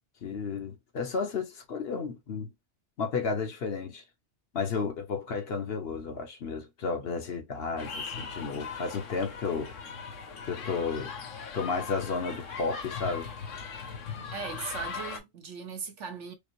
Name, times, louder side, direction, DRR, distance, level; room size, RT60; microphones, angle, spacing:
voice 1, 0.2-2.5 3.0-4.0 4.5-9.7 10.4-11.1 11.5-13.3, left 5 dB, 55° left, 1.0 m, -32 dB
sound 1, 7.8-15.2, left 5 dB, 80° left, 1.3 m, -39 dB
voice 2, 14.3-16.3, right 6 dB, 75° right, 1.3 m, -38 dB
5.0 x 2.0 x 3.0 m
omnidirectional pair, 1.3 m